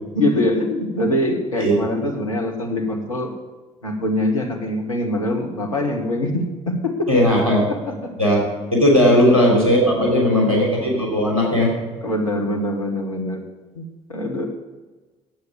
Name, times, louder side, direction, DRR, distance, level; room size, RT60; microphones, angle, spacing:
voice 1, 0.1-3.3 3.8-7.1 7.9-8.1 9.0-9.5 9.8-10.6 12.0-13.4 13.7-14.5, left 1 dB, 85° left, 2 dB, 1.5 m, -24 dB
voice 2, 7.1-7.7 8.2-8.5 8.7-11.7, equal, 90° right, -1 dB, 3.0 m, -17 dB
10.0 x 8.1 x 9.0 m, 1.2 s
figure-of-eight pair, 50°, 17 cm